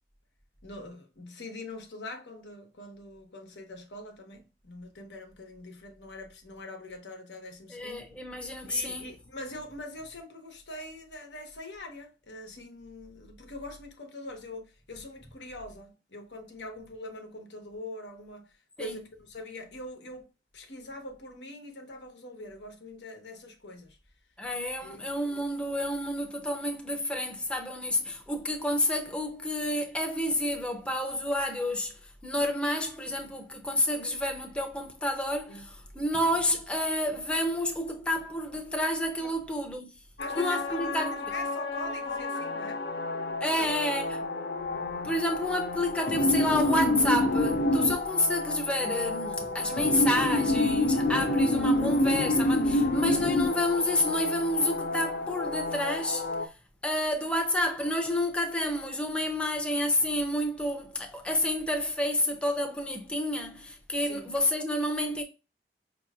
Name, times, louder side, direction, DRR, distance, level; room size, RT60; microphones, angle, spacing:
voice 1, 0.6-8.0 8.7-24.0 24.8-25.1 35.5-35.7 39.2-39.3 40.2-42.8 43.5-44.1 51.0-51.3 64.0-64.3, left 1 dB, 85° left, 1.0 m, -43 dB
voice 2, 7.7-9.2 18.8-19.0 24.4-39.9 40.3-41.2 43.4-44.2 45.0-56.5 56.8-65.2, left 1 dB, 5° left, 0.6 m, -29 dB
sound 1, 40.2-56.5, left 2 dB, 60° left, 0.6 m, -28 dB
5.4 x 2.8 x 2.4 m
head